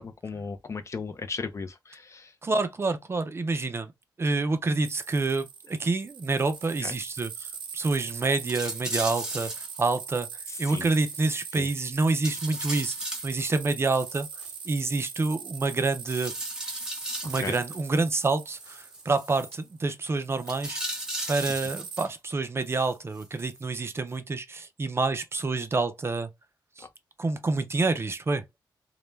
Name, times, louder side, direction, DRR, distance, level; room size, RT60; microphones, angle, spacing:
voice 1, 0.0-2.3 6.8-6.9 10.5-10.9 11.5-11.7 17.4-17.6 26.8-26.9, left 4 dB, 40° left, 0.4 m, -36 dB
voice 2, 2.4-3.9 4.2-10.3 10.6-13.0 13.2-14.3 14.6-16.3 17.2-20.8 21.3-26.3 26.8-26.9 27.2-28.4, right 3 dB, 30° right, 0.4 m, -27 dB
sound 1, 4.8-19.8 20.2-22.0, right 6 dB, 85° right, 0.5 m, -41 dB
sound 2, 6.5-7.2 7.5-7.7 8.0-8.1 8.5-9.8 10.5-11.8 12.2-13.4 13.9-15.1 16.0-17.8 18.5-19.6 20.4-22.1 22.6-23.6 24.1-24.2, right 1 dB, 10° right, 0.8 m, -37 dB
2.1 x 2.0 x 3.2 m
cardioid pair, 85°, 8 cm